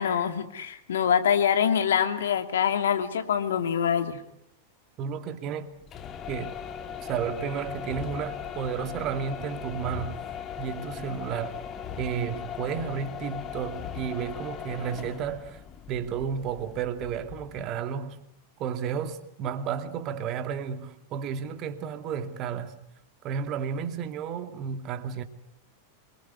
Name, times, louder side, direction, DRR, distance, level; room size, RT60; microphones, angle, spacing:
voice 1, 0.0-4.2, left 8 dB, 65° left, 2.6 m, -25 dB
voice 2, 5.0-5.7 6.3-6.6 7.0-10.2 10.6-11.6 12.0-15.6 15.9-18.2 18.6-22.8 23.2-25.2, right 7 dB, 35° right, 2.5 m, -32 dB
sound 1, 5.8-17.7, left 8 dB, 30° left, 1.9 m, -39 dB
26.5 x 22.5 x 9.6 m
figure-of-eight pair, 90°, 0 cm